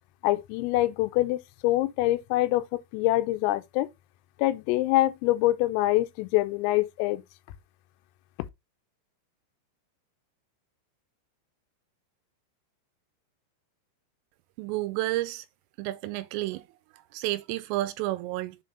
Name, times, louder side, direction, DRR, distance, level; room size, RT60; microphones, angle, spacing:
voice 1, 0.2-3.9 4.4-7.2, left 16 dB, 85° left, 3.3 m, -25 dB
voice 2, 14.6-15.4 15.8-16.6 17.1-18.6, right 17 dB, 85° right, 3.1 m, -30 dB
7.3 x 3.5 x 4.0 m
omnidirectional pair, 5.9 m